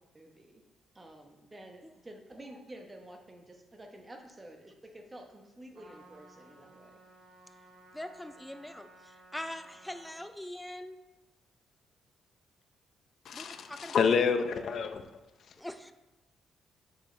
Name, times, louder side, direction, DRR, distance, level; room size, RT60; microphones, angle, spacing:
voice 1, 0.1-0.6 0.9-7.0, right 1 dB, 20° right, 3 dB, 1.1 m, -50 dB
Trumpet, 5.7-10.2, right 2 dB, 75° right, 1.7 m, -57 dB
voice 2, 7.9-11.0 13.3-14.0 15.6-15.9, left 1 dB, 5° left, 10 dB, 0.4 m, -42 dB
voice 3, 13.3-15.0, left 6 dB, 60° left, 8 dB, 0.6 m, -28 dB
7.3 x 6.4 x 3.3 m, 1.1 s
cardioid pair, 90°, 0 cm